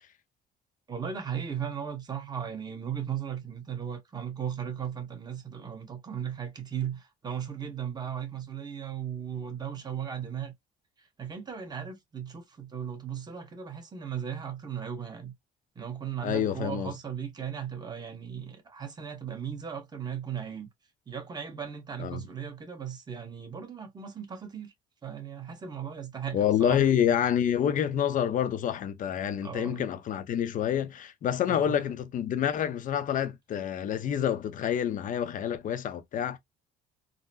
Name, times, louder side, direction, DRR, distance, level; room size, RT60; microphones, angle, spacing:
voice 1, 0.9-10.5 11.2-15.3 15.7-20.7 21.1-24.7 25.0-26.9 29.4-29.8 31.5-31.7, right 8 dB, 25° right, 1.2 m, -37 dB
voice 2, 16.2-16.9 22.0-22.2 26.3-36.4, left 9 dB, 50° left, 0.7 m, -28 dB
3.8 x 2.1 x 2.6 m
cardioid pair, 110°, 17 cm